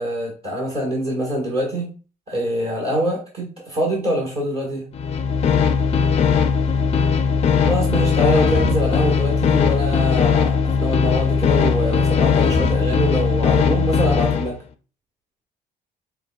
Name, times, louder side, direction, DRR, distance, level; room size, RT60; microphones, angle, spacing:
voice 1, 0.0-1.9 2.3-4.9 7.6-14.6, equal, 35° right, -3 dB, 1.5 m, -24 dB
sound 1, 4.9-14.5, left 6 dB, 40° left, 0.4 m, -19 dB
6.5 x 2.3 x 2.4 m, 0.35 s
cardioid pair, 110°, 17 cm